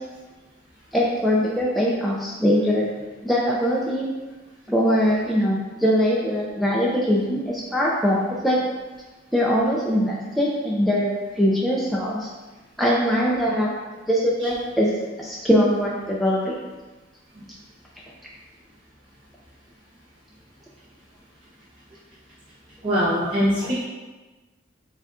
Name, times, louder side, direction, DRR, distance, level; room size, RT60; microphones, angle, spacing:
voice 1, 0.9-2.9 3.2-4.1 4.7-8.6 9.3-12.3 12.8-13.7 14.1-16.5, equal, ahead, -5 dB, 0.3 m, -22 dB
voice 2, 22.8-23.8, equal, 25° right, -11 dB, 0.7 m, -22 dB
6.7 x 2.3 x 2.4 m, 1.2 s
head